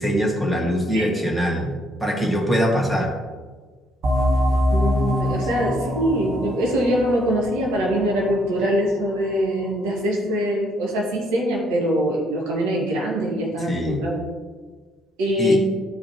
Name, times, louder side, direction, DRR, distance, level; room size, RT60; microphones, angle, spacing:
voice 1, 0.0-1.7 2.0-3.1 13.7-14.0 15.4-15.6, equal, 5° right, 0 dB, 2.1 m, -22 dB
voice 2, 0.9-1.3 4.7-14.2 15.2-15.6, equal, 70° right, -3 dB, 1.9 m, -23 dB
sound 1, 4.0-9.3, left 1 dB, 50° right, 1.3 m, -24 dB
11.5 x 5.0 x 3.1 m, 1.4 s
hypercardioid pair, 55°, 0 cm